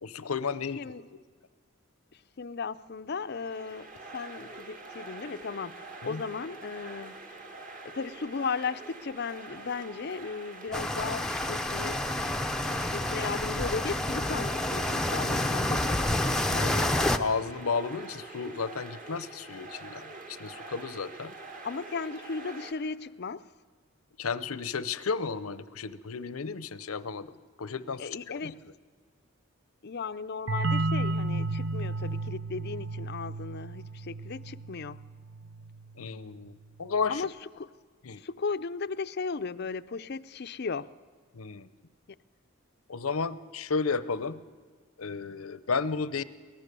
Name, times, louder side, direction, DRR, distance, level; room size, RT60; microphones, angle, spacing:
voice 1, 0.0-0.9 6.0-6.2 16.6-16.7 17.2-20.1 20.4-21.3 24.2-28.1 28.4-28.5 36.0-37.3 38.0-38.2 41.3-41.7 42.9-44.4 45.0-46.2, left 5 dB, 85° left, 0.8 m, -33 dB
voice 2, 0.8-1.1 2.1-7.2 7.8-12.1 12.7-16.9 21.6-23.5 28.0-28.6 29.8-35.0 37.1-37.7 38.2-40.9 42.1-42.2, left 4 dB, 50° left, 0.5 m, -36 dB
sound 1, 3.2-22.7, right 3 dB, 40° right, 2.2 m, -45 dB
sound 2, 10.7-17.2, left 1 dB, 5° left, 0.7 m, -29 dB
sound 3, 30.5-35.9, right 2 dB, 60° right, 0.9 m, -33 dB
23.5 x 18.5 x 6.8 m
head